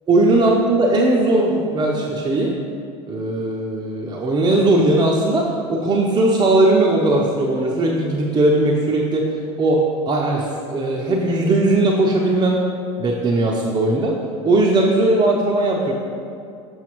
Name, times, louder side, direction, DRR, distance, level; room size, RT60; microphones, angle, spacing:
voice 1, 0.1-2.5 3.1-9.3 9.6-12.6 13.0-14.2 14.4-15.9, right 2 dB, 30° right, -2 dB, 0.6 m, -18 dB
6.9 x 5.6 x 3.0 m, 2.4 s
hypercardioid pair, 85°, 16 cm